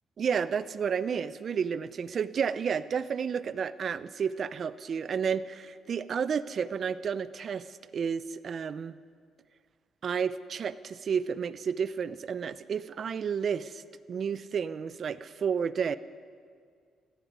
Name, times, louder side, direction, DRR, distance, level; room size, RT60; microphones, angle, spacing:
voice 1, 0.2-9.0 10.0-13.8 14.1-16.0, right 7 dB, 50° right, 16 dB, 0.7 m, -31 dB
18.5 x 14.5 x 9.6 m, 2.1 s
cardioid pair, 90°, 0 cm